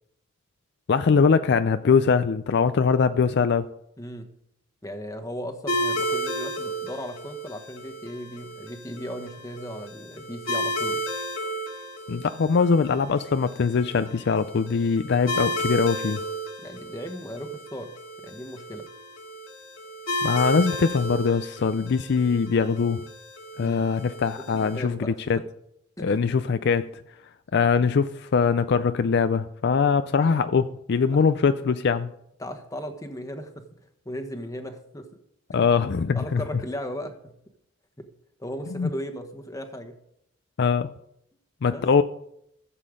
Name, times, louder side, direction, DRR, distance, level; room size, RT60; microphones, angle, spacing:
voice 1, 0.9-3.7 12.1-16.2 20.2-23.0 23.6-25.0 25.3-25.4 26.0-27.0 27.5-32.1 35.5-36.4 38.7-38.9 40.6-40.9 41.6-42.0, left 5 dB, 55° left, 11 dB, 0.4 m, -22 dB
voice 2, 4.0-4.3 4.8-11.0 16.6-17.9 18.2-18.9 23.6-23.8 24.4-25.2 26.0-26.2 32.4-33.7 34.0-35.1 35.5-35.7 36.1-37.3 38.4-40.0 41.7-41.8, equal, 15° left, 6 dB, 1.2 m, -36 dB
sound 1, 5.7-24.8, equal, 90° left, 2.1 m, -33 dB
15.0 x 7.5 x 5.0 m, 0.76 s
head